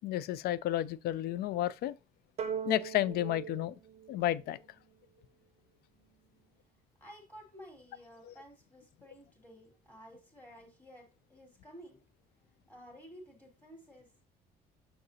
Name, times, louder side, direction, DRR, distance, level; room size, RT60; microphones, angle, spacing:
voice 1, 0.0-2.0 2.6-3.7 4.1-4.6 8.2-8.3, left 13 dB, 70° left, 0.4 m, -32 dB
sound 1, 2.4-5.0, right 7 dB, 40° right, 0.6 m, -40 dB
voice 2, 7.0-12.0 12.7-14.2, equal, 10° left, 2.5 m, -53 dB
6.6 x 5.8 x 2.7 m
cardioid pair, 110°, 17 cm